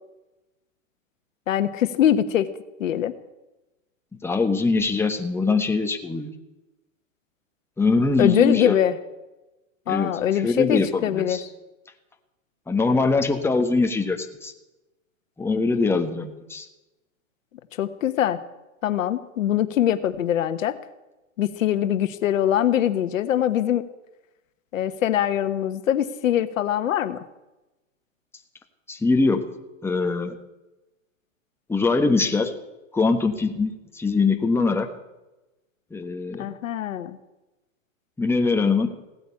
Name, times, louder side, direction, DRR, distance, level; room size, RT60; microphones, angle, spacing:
voice 1, 1.5-2.5 2.8-3.1 8.2-8.9 9.9-11.5 17.8-18.4 18.8-20.8 21.4-23.9 24.7-27.2 36.4-37.2, left 11 dB, 75° left, 12 dB, 1.2 m, -22 dB
voice 2, 4.2-6.3 7.8-8.8 9.9-11.4 12.7-14.5 15.4-16.7 28.9-29.4 29.8-30.3 31.7-32.5 32.9-34.9 35.9-36.5 38.2-38.9, left 3 dB, 5° left, 4 dB, 1.4 m, -22 dB
16.5 x 9.5 x 8.5 m, 1.0 s
hypercardioid pair, 120°, 40 cm